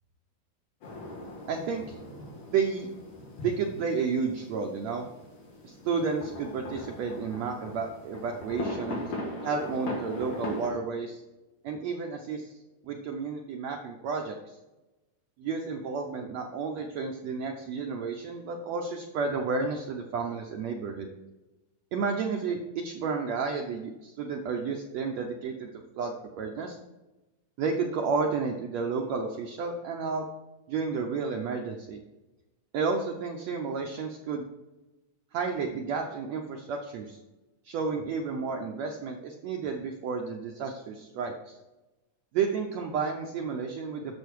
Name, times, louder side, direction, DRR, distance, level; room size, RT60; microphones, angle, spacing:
sound 1, 0.8-10.7, left 1 dB, 60° left, 3.5 m, -39 dB
voice 1, 1.5-2.0 2.5-2.9 3.4-5.1 5.6-9.1 9.4-11.2 11.6-12.5 12.8-14.5 15.4-21.1 21.9-26.8 27.6-30.3 30.7-32.0 32.7-34.5 35.3-37.2 37.6-41.6 42.3-44.2, right 5 dB, 85° right, 2 dB, 1.5 m, -31 dB
8.6 x 7.0 x 4.7 m, 1.1 s
omnidirectional pair, 4.1 m